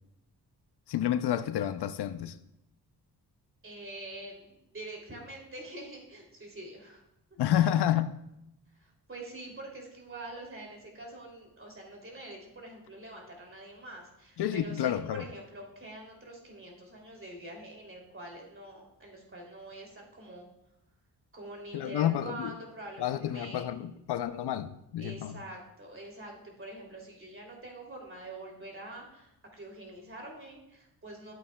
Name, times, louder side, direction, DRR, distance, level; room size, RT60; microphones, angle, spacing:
voice 1, 0.9-2.4 7.4-8.1 14.4-15.2 21.7-22.5 23.0-25.4, left 11 dB, 75° left, 0.5 m, -29 dB
voice 2, 3.6-7.0 7.5-7.7 8.8-20.5 21.3-23.7 25.0-31.3, right 2 dB, 30° right, 2.7 m, -45 dB
11.5 x 8.4 x 2.2 m
cardioid pair, 80°, 40 cm